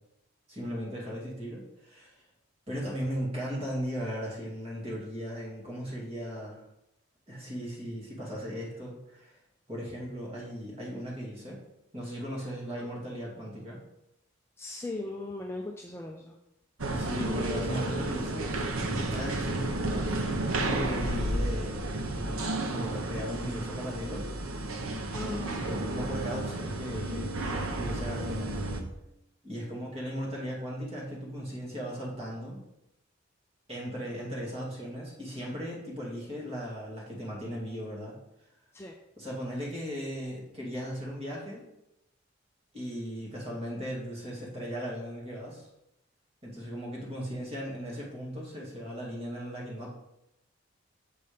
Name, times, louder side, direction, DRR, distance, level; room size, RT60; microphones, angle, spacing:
voice 1, 0.5-2.2 2.7-6.6 7.3-9.3 9.7-11.6 11.9-13.8 16.9-18.7 19.0-24.3 25.6-28.7 29.4-32.6 33.7-38.2 39.2-41.7 42.7-45.7 46.4-49.9, equal, 30° right, -4 dB, 2.4 m, -37 dB
voice 2, 14.6-16.3 25.1-25.8 38.7-38.9, left 2 dB, 10° left, 1 dB, 0.5 m, -38 dB
sound 1, 16.8-28.8, right 2 dB, 85° right, 0.9 m, -32 dB
7.6 x 4.2 x 5.1 m, 0.85 s
head